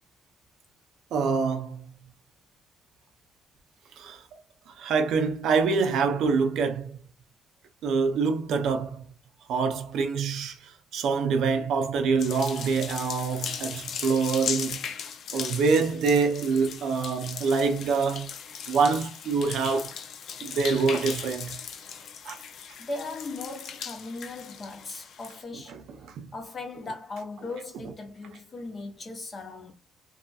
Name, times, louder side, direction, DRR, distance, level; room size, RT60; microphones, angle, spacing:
voice 1, 1.1-1.9 4.0-4.4 4.7-7.0 7.8-9.1 9.5-14.8 15.3-18.3 18.7-20.0 20.4-21.6 22.2-22.4 25.7-26.3, right 5 dB, 70° right, 0.5 m, -26 dB
sound 1, 12.2-25.4, left 7 dB, 60° left, 0.4 m, -38 dB
voice 2, 22.8-25.8 26.3-29.7, left 3 dB, 30° left, 0.8 m, -38 dB
2.7 x 2.6 x 2.2 m
cardioid pair, 160°, 0 cm